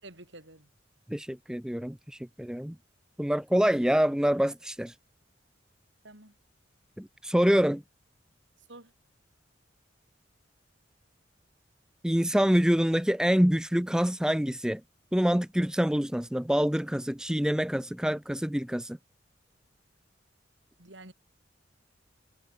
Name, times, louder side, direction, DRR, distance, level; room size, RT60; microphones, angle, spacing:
voice 1, 0.0-0.7 6.0-6.3 8.7-8.9 20.8-21.1, right 2 dB, 70° right, 6.2 m, -49 dB
voice 2, 1.1-2.8 3.2-4.9 7.0-7.8 12.0-14.8 15.1-19.0, equal, 5° right, 0.5 m, -26 dB
head